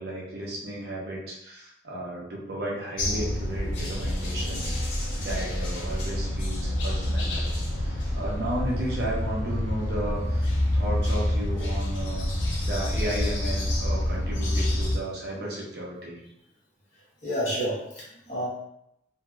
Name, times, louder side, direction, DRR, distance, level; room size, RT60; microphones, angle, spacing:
voice 1, 0.0-4.8 5.2-12.3 12.6-16.2, right 1 dB, 55° right, -4 dB, 0.8 m, -34 dB
sound 1, 3.0-15.0, left 1 dB, 85° left, 0.8 m, -27 dB
voice 2, 17.2-18.5, equal, 40° left, -8 dB, 1.1 m, -30 dB
2.8 x 2.8 x 2.4 m, 0.78 s
head